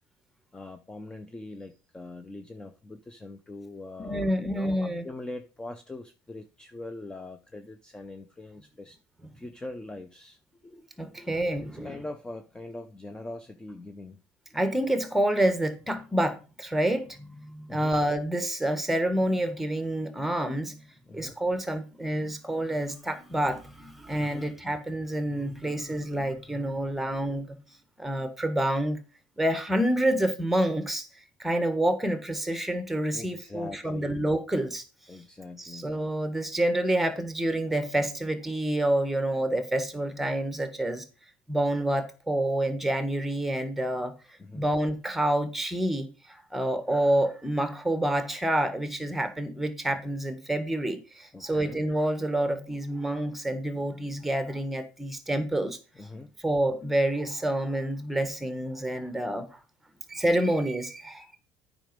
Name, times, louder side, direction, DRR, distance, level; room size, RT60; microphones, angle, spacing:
voice 1, 0.5-9.0 9.3-11.3 11.6-14.2 17.7-18.0 21.1-21.3 24.2-24.5 33.1-34.2 35.1-35.9 44.4-44.7 51.3-51.8 56.0-56.3 59.9-60.0, left 2 dB, 15° left, 0.8 m, -42 dB
voice 2, 4.0-5.1 11.0-12.0 14.5-20.8 21.1-27.6 28.0-29.0 29.4-31.1 31.4-34.8 35.6-41.0 41.5-44.1 44.5-55.8 56.4-59.6 60.1-61.4, right 1 dB, 5° right, 1.5 m, -28 dB
9.0 x 5.2 x 5.2 m
cardioid pair, 115°, 6 cm